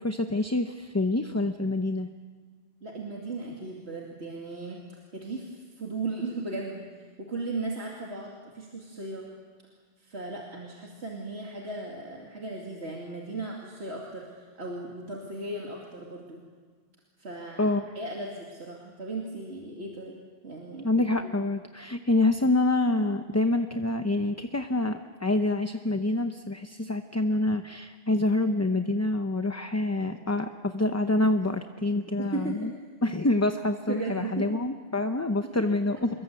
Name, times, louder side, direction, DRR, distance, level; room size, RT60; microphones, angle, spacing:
voice 1, 0.0-2.1 17.6-17.8 20.8-32.7 33.0-36.1, left 2 dB, 15° left, 7 dB, 0.7 m, -26 dB
voice 2, 2.8-4.8 5.1-6.8 7.2-9.3 10.0-16.4 17.2-20.2 20.4-21.3 32.2-32.8 33.9-34.6 35.4-35.6, right 2 dB, 90° right, -2 dB, 2.9 m, -36 dB
26.5 x 22.5 x 8.0 m, 1.5 s
omnidirectional pair, 1.1 m